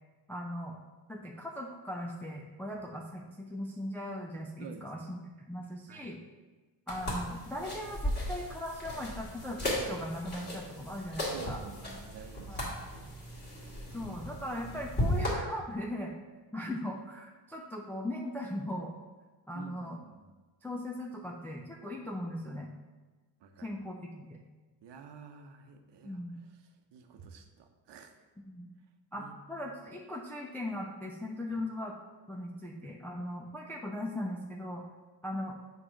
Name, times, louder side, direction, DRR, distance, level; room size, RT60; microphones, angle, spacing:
voice 1, 0.3-0.8 1.1-6.2 6.9-11.6 12.5-12.7 13.9-16.1 16.5-19.0 19.5-20.0 20.6-22.7 23.6-24.4 26.0-26.4 28.5-28.7 29.1-31.9 32.3-34.8 35.2-35.6, left 1 dB, 5° left, -1 dB, 0.4 m, -39 dB
sound 1, 6.9-15.3, equal, 25° left, 2.1 m, -36 dB
voice 2, 11.3-13.1 13.8-13.9 19.5-20.3 23.4-23.7 24.8-26.2 26.9-28.1 29.2-29.7 31.5-31.6, right 5 dB, 75° right, 6 dB, 0.9 m, -50 dB
7.5 x 3.2 x 5.9 m, 1.3 s
cardioid pair, 155°, 42 cm